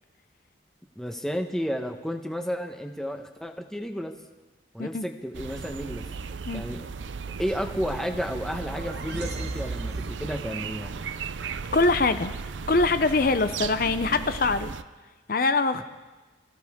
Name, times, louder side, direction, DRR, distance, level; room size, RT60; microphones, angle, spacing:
voice 1, 1.0-4.2 4.7-6.0 6.5-6.9 7.4-10.9 15.8-15.9, equal, 5° left, 4 dB, 0.9 m, -32 dB
sound 1, 5.3-14.8, right 5 dB, 85° right, 0.6 m, -35 dB
sound 2, 8.3-10.6, right 2 dB, 60° right, 1.1 m, -39 dB
voice 2, 11.7-12.3 12.7-14.7 15.3-15.8, left 3 dB, 50° left, 10 dB, 0.6 m, -23 dB
26.5 x 15.0 x 3.6 m, 1.2 s
head